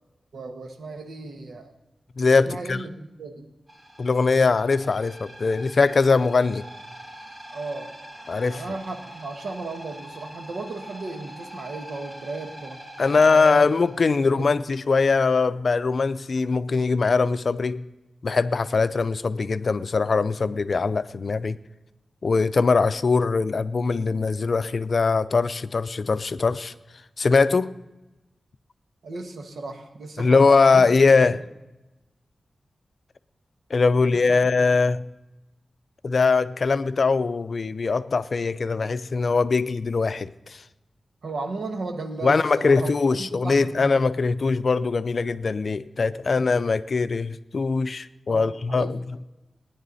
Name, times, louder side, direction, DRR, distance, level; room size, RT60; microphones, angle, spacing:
voice 1, 0.3-1.7 2.5-3.5 7.5-7.9 8.5-12.8 13.2-13.7 14.1-14.5 29.0-30.9 31.3-31.4 34.0-34.2 34.6-34.9 41.2-42.9 43.2-44.0 48.3-48.9, right 3 dB, 90° right, 1.5 m, -35 dB
voice 2, 2.2-2.8 4.0-6.6 8.3-8.6 13.0-17.8 18.2-21.6 22.2-26.7 27.2-27.7 30.2-31.4 33.7-35.1 36.0-40.6 42.2-49.0, left 4 dB, 55° left, 0.5 m, -21 dB
sound 1, 3.7-14.5, right 1 dB, 20° right, 2.4 m, -43 dB
18.5 x 10.5 x 4.1 m
wide cardioid pair, 105°, 0 cm